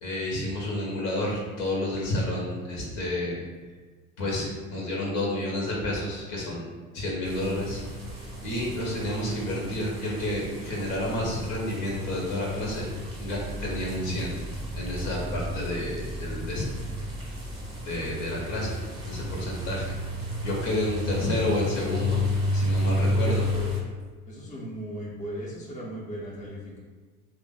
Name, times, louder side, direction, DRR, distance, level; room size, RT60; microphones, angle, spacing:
voice 1, 0.0-3.4 4.2-6.7 6.9-7.8 8.4-12.9 13.2-14.4 14.7-16.8 17.8-18.8 19.0-19.9 20.4-22.2 22.5-23.5, left 1 dB, 60° left, -3 dB, 1.4 m, -30 dB
sound 1, 7.2-23.8, left 1 dB, 10° right, 1.2 m, -32 dB
voice 2, 23.1-23.7 24.3-26.8, equal, 15° left, -5 dB, 0.9 m, -37 dB
3.2 x 2.6 x 3.9 m, 1.4 s
hypercardioid pair, 75°, 41 cm